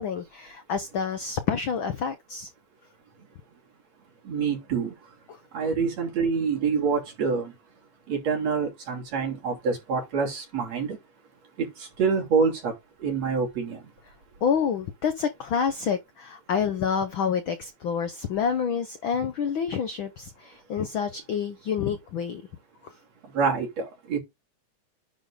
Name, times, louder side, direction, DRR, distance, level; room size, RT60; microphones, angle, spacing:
voice 1, 0.0-2.5 14.4-22.4, left 7 dB, 70° left, 1.2 m, -28 dB
voice 2, 4.2-4.9 5.5-7.5 8.1-11.0 11.6-12.7 13.0-13.8 23.3-24.2, right 5 dB, 60° right, 4.2 m, -26 dB
10.0 x 4.3 x 5.0 m
omnidirectional pair, 3.3 m